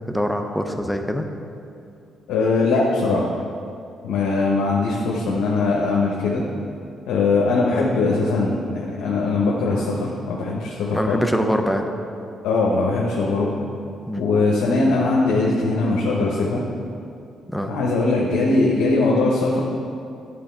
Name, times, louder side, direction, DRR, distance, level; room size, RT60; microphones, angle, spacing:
voice 1, 0.1-1.2 10.9-11.9 14.1-14.2 17.5-17.8, equal, ahead, 5 dB, 0.6 m, -23 dB
voice 2, 2.3-3.3 4.0-6.4 7.1-11.2 12.4-13.6 14.2-16.6 17.7-19.6, left 3 dB, 90° left, -3 dB, 0.8 m, -21 dB
10.5 x 3.8 x 4.4 m, 2.5 s
cardioid pair, 90°, 0 cm